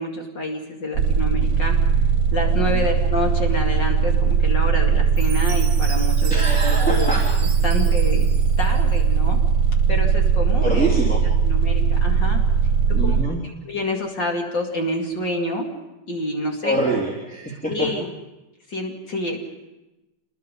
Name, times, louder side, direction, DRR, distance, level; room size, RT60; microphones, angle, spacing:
voice 1, 0.0-1.7 2.3-7.1 7.6-8.3 8.6-9.4 9.9-10.9 11.4-12.4 13.0-13.2 13.4-15.7 16.1-16.8 17.7-18.1 18.7-19.4, left 1 dB, 55° left, 1 dB, 3.1 m, -28 dB
sound 1, 0.9-13.2, right 6 dB, 75° right, 1.9 m, -19 dB
Chime, 5.2-9.2, right 5 dB, 55° right, 2.3 m, -38 dB
voice 2, 6.3-7.3 10.6-11.2 12.9-13.4 16.6-17.9, right 1 dB, 5° left, -4 dB, 3.2 m, -25 dB
27.5 x 21.0 x 5.4 m, 0.99 s
omnidirectional pair, 2.4 m